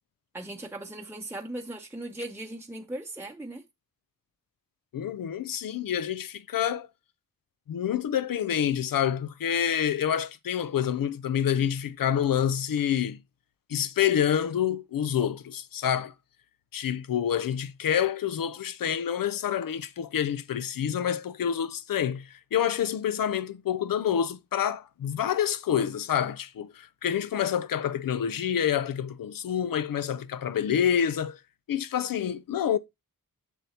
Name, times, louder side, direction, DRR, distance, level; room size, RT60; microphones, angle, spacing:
voice 1, 0.3-3.6, right 1 dB, 5° right, 0.7 m, -38 dB
voice 2, 4.9-6.9 7.7-13.2 13.7-16.1 16.7-31.4 31.7-32.8, left 9 dB, 80° left, 0.6 m, -27 dB
7.3 x 6.9 x 2.8 m
wide cardioid pair, 85°, 33 cm